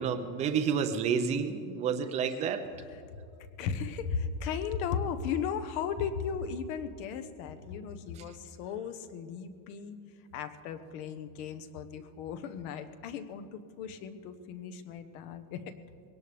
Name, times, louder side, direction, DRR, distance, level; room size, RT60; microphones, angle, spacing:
voice 1, 0.0-2.6 8.2-8.3, right 6 dB, 20° right, 7 dB, 0.3 m, -30 dB
voice 2, 3.6-10.0 10.3-15.7, left 6 dB, 65° left, 10 dB, 1.1 m, -36 dB
22.0 x 18.0 x 3.4 m, 2.5 s
cardioid pair, 175°, 45 cm